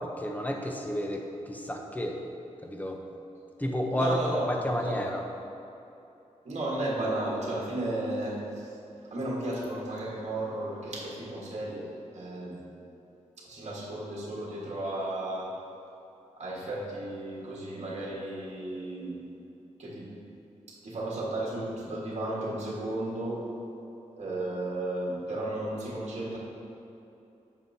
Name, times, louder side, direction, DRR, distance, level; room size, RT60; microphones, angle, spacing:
voice 1, 0.0-2.2 2.6-3.0 3.6-4.2 4.5-5.2, equal, 15° left, 2 dB, 0.7 m, -31 dB
voice 2, 3.9-5.0 6.4-8.8 9.1-12.6 13.4-15.5 16.4-19.2 19.8-20.1 20.7-23.4 24.1-26.4, right 1 dB, 60° right, -5 dB, 1.5 m, -34 dB
9.0 x 6.1 x 2.7 m, 2.9 s
wide cardioid pair, 130°, 13 cm